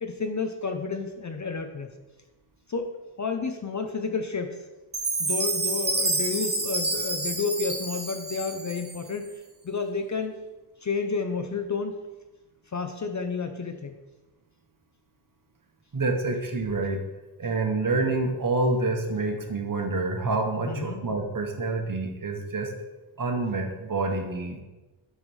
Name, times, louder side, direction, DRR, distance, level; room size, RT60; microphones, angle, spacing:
voice 1, 0.0-1.9 2.7-4.6 5.2-9.3 9.6-10.4 10.8-11.9 12.7-14.0 20.7-21.0, left 4 dB, 35° left, 6 dB, 0.5 m, -30 dB
Chime, 4.9-9.1, right 2 dB, 20° right, 0.8 m, -28 dB
voice 2, 15.9-17.0 17.4-22.7 23.2-24.6, right 3 dB, 40° right, 3 dB, 1.0 m, -27 dB
8.3 x 3.2 x 5.3 m, 1.1 s
wide cardioid pair, 105°, 50 cm